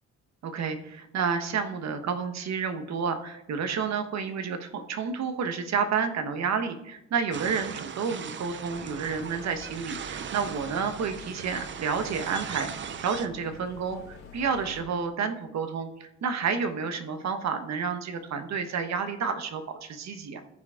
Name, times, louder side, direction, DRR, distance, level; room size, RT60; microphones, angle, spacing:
voice 1, 0.4-20.4, right 6 dB, 60° right, 7 dB, 1.2 m, -30 dB
sound 1, 7.3-13.3, right 7 dB, 40° right, 0.6 m, -39 dB
sound 2, 8.6-14.8, left 4 dB, 60° left, 2.3 m, -48 dB
14.5 x 5.0 x 3.7 m, 0.86 s
cardioid pair, 90°, 30 cm